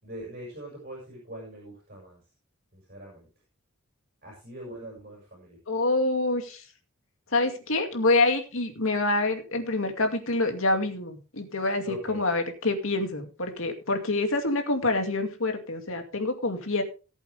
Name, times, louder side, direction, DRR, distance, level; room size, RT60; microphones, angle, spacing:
voice 1, 0.0-2.2 2.7-3.3 4.2-5.6 11.8-12.2, right 1 dB, 40° right, -1 dB, 6.0 m, -42 dB
voice 2, 5.7-6.6 7.3-16.8, left 2 dB, 65° left, 5 dB, 2.4 m, -26 dB
18.5 x 8.1 x 3.5 m, 0.32 s
head